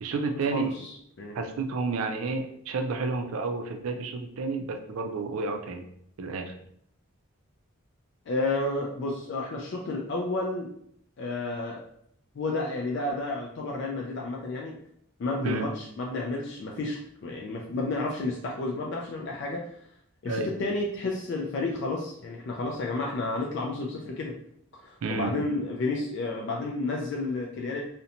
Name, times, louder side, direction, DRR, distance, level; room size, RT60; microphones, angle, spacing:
voice 1, 0.0-0.7 1.3-5.8 6.2-6.5 15.4-15.7 20.2-20.5 25.0-25.3, right 4 dB, 80° right, 5 dB, 0.4 m, -30 dB
voice 2, 0.5-1.4 8.3-10.7 11.2-11.8 12.4-14.8 15.2-19.8 20.2-24.4 24.7-27.8, left 2 dB, 55° left, -1 dB, 0.3 m, -31 dB
2.5 x 2.1 x 2.7 m, 0.70 s
head